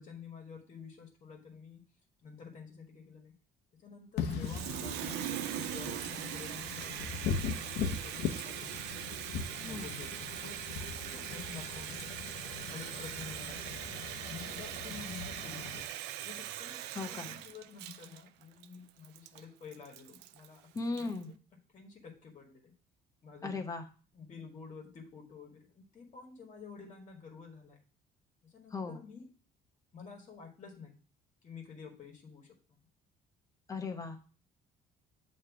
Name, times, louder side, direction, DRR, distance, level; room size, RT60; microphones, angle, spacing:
voice 1, 0.0-1.9 2.2-3.3 3.8-8.9 9.6-12.1 12.5-13.8 14.3-15.8 16.2-20.6 20.9-21.3 21.7-22.7 23.2-23.6 24.1-27.8 28.4-29.3 29.9-30.9 31.4-32.5, left 5 dB, 40° left, 2 dB, 1.6 m, -50 dB
Wind / Rain, 4.2-15.8, left 6 dB, 75° left, 0.9 m, -40 dB
Water tap faucet, 4.3-21.2, right 13 dB, 90° right, 0.5 m, -41 dB
voice 2, 9.6-9.9 16.9-17.4 20.7-21.3 23.4-23.8 28.7-29.0 33.7-34.3, left 3 dB, 20° left, 4 dB, 0.9 m, -37 dB
7.5 x 3.2 x 5.9 m, 0.38 s
cardioid pair, 110°, 17 cm